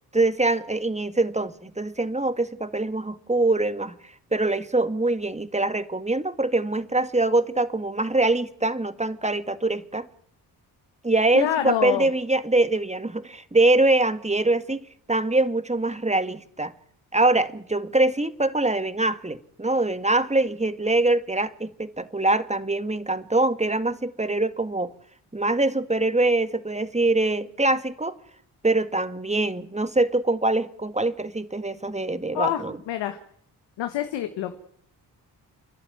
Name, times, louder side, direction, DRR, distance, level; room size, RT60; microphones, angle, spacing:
voice 1, 0.1-10.1 11.0-16.7 17.1-24.9 25.3-28.2 28.6-32.8, right 2 dB, 15° right, 1.9 m, -24 dB
voice 2, 11.3-12.1 32.3-33.2 33.8-34.5, left 11 dB, 90° left, 1.6 m, -27 dB
29.0 x 11.5 x 9.5 m
supercardioid pair, 45°, 42 cm